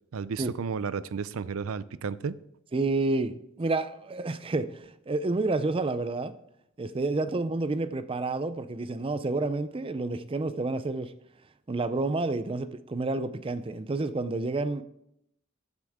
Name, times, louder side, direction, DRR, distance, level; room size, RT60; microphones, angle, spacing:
voice 1, 0.1-2.4, right 5 dB, 80° right, 17 dB, 0.5 m, -33 dB
voice 2, 2.7-6.4 6.8-11.1 11.7-14.8, right 2 dB, 25° right, 13 dB, 0.4 m, -29 dB
13.5 x 9.5 x 3.6 m, 0.79 s
head